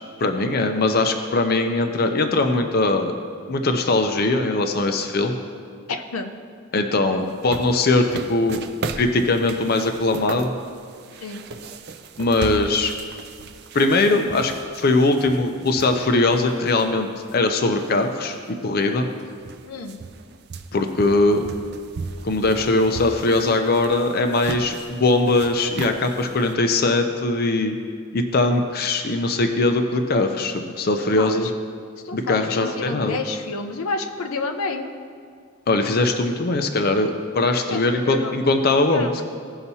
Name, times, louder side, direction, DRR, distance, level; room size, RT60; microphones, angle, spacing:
voice 1, 0.2-3.1 3.5-5.4 6.7-8.6 9.0-10.5 12.2-12.9 13.7-19.1 20.7-21.4 22.2-27.8 28.1-31.5 32.1-33.2 35.7-39.3, left 2 dB, 45° left, 5 dB, 0.5 m, -21 dB
voice 2, 5.9-6.3 11.2-11.4 19.7-20.0 30.9-31.5 32.0-34.9 37.7-38.3 38.9-39.1, left 3 dB, 90° left, 5 dB, 0.7 m, -29 dB
sound 1, 7.3-17.3 17.8-17.9 18.8-18.9 19.1-26.5, right 4 dB, 50° right, 0.4 m, -37 dB
16.5 x 5.7 x 2.8 m, 2.2 s
head